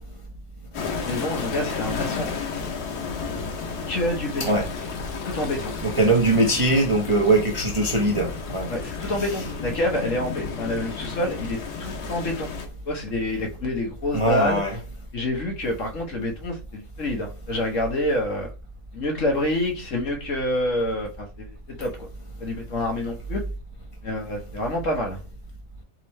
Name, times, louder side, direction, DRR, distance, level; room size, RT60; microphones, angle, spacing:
sound 1, 0.7-12.7, left 5 dB, 85° left, 1.5 m, -33 dB
voice 1, 1.0-2.3 3.9-4.6 5.2-5.7 8.7-12.5 12.8-14.6 15.1-18.5 18.9-22.1 22.4-23.4 24.0-25.2, left 1 dB, 55° left, 1.5 m, -27 dB
voice 2, 5.8-8.7 14.1-14.8, right 2 dB, 30° right, 0.7 m, -21 dB
4.1 x 3.7 x 3.2 m
omnidirectional pair, 1.6 m